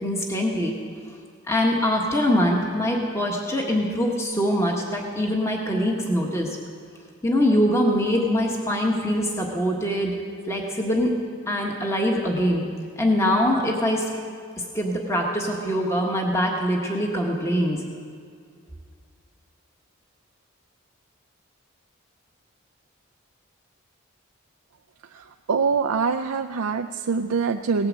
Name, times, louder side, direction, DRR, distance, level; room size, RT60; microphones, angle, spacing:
voice 1, 0.0-0.7 1.5-6.6 7.2-10.1 10.5-11.1 11.5-12.6 13.0-14.1 14.7-17.8, equal, 15° left, 0 dB, 1.5 m, -23 dB
voice 2, 25.1-27.9, right 5 dB, 80° right, 6 dB, 0.5 m, -24 dB
18.0 x 8.8 x 7.6 m, 2.2 s
head